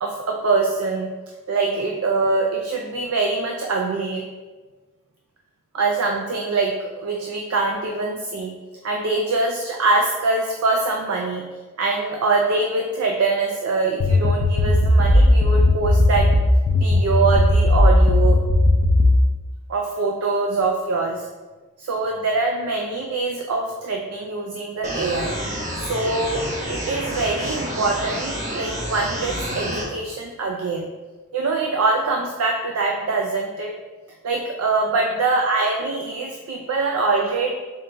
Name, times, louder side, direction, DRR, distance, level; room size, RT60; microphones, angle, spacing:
voice 1, 0.0-1.1 1.5-4.3 5.7-8.5 8.8-11.4 11.8-16.3 16.8-18.4 19.7-21.3 21.8-25.3 25.8-26.4 26.7-30.9 31.3-33.7 34.2-37.5, right 3 dB, 70° right, 1 dB, 0.4 m, -23 dB
sound 1, 14.0-19.2, left 1 dB, 60° left, 0.4 m, -16 dB
sound 2, 24.8-29.8, equal, 30° right, 0.9 m, -29 dB
5.3 x 3.9 x 2.2 m, 1.3 s
head